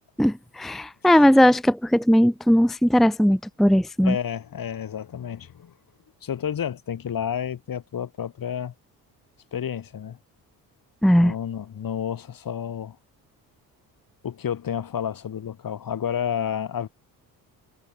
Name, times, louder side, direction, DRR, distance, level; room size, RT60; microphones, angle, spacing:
voice 1, 0.2-4.2 11.0-11.3, equal, ahead, 0.8 m, -18 dB
voice 2, 4.0-5.7 6.2-8.7 9.5-10.2 11.1-13.0 14.2-16.9, left 9 dB, 60° left, 5.0 m, -30 dB
supercardioid pair, 65°, 39 cm